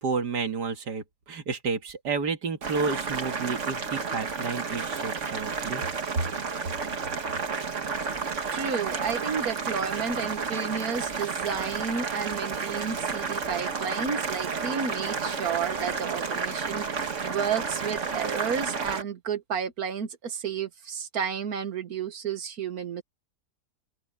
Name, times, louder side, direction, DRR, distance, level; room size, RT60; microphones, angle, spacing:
voice 1, 0.0-5.8 6.2-6.3, right 4 dB, 85° right, 2.4 m, -31 dB
Boiling, 2.6-19.0, right 5 dB, 50° right, 1.8 m, -31 dB
voice 2, 8.5-23.0, right 6 dB, 65° right, 1.8 m, -32 dB
open air
omnidirectional pair, 1.7 m